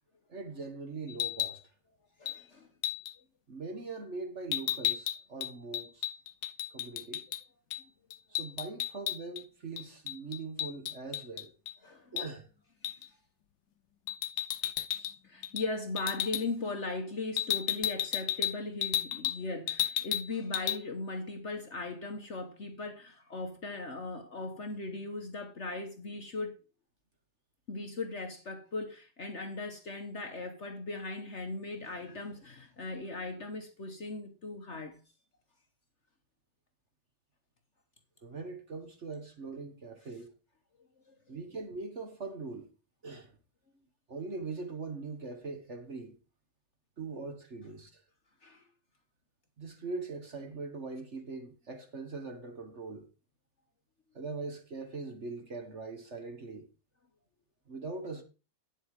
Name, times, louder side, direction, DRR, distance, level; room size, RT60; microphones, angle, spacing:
voice 1, 0.3-1.6 3.5-6.1 6.7-7.2 8.3-11.5 12.1-12.5 14.9-15.1 38.2-40.3 41.3-42.7 43.0-43.3 44.1-46.2 47.0-48.0 49.6-53.1 54.1-56.7 57.7-58.2, right 3 dB, 40° right, 1.6 m, -41 dB
sound 1, 1.1-1.6 2.3-2.4 2.8-3.1 4.5-7.4 7.7-7.8 8.1-9.4 9.8-11.7 12.2-12.3 12.8-13.1 14.1-15.2 15.4-15.7 16.0-16.4 17.4-19.4 19.7-20.3 20.5-20.8, left 12 dB, 80° left, 1.3 m, -33 dB
voice 2, 2.2-2.7 11.8-12.1 15.2-26.6 27.7-35.0 41.3-41.4 48.4-48.6, left 3 dB, 45° left, 1.3 m, -38 dB
9.1 x 7.7 x 4.8 m
omnidirectional pair, 1.9 m